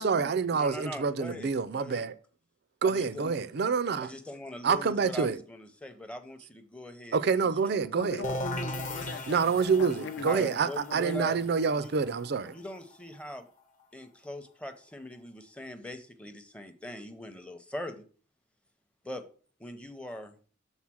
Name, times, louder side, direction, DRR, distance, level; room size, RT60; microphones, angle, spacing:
voice 1, 0.0-2.1 2.8-4.1 4.6-5.4 7.1-8.2 9.3-12.5, right 5 dB, 55° right, 0.4 m, -27 dB
voice 2, 0.5-2.0 2.8-3.5 4.0-7.2 7.4-7.9 10.3-11.4 11.8-11.9 12.5-13.5 13.9-18.0 19.0-19.2 19.6-20.4, left 1 dB, 5° left, 0.7 m, -41 dB
voice 3, 7.9-11.5, left 3 dB, 60° left, 0.7 m, -40 dB
sound 1, 8.2-13.8, left 1 dB, 40° left, 1.0 m, -39 dB
7.2 x 4.0 x 6.2 m
head